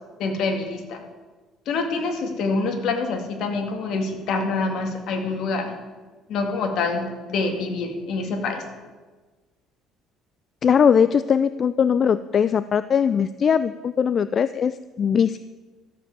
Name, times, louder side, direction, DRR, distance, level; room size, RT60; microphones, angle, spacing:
voice 1, 0.2-1.0 1.7-5.7 6.3-8.6, left 3 dB, 60° left, 4 dB, 2.3 m, -26 dB
voice 2, 10.6-15.4, left 7 dB, 40° left, 14 dB, 0.3 m, -20 dB
13.5 x 7.7 x 7.4 m, 1.3 s
cardioid pair, 125°, 0 cm